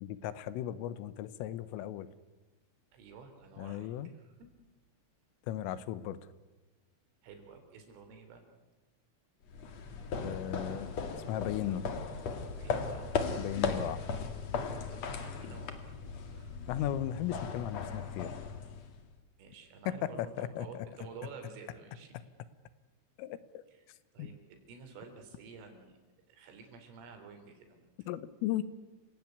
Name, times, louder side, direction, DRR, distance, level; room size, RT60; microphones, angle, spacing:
voice 1, 0.0-2.1 3.6-4.1 5.5-6.2 10.2-10.9 11.3-11.9 13.4-14.0 16.7-18.3 19.9-20.7 23.2-23.6 24.2-24.3 28.1-28.6, left 12 dB, 80° left, 15 dB, 3.6 m, -36 dB
voice 2, 2.9-4.5 7.2-8.4 12.6-13.2 14.9-15.7 16.2-16.6 19.4-22.2 23.7-23.8 24.1-26.0 26.3-28.1, right 5 dB, 75° right, 6 dB, 6.1 m, -51 dB
sound 1, 9.5-19.1, left 5 dB, 55° left, 2.0 m, -37 dB
28.5 x 17.0 x 9.5 m, 1.2 s
omnidirectional pair, 5.8 m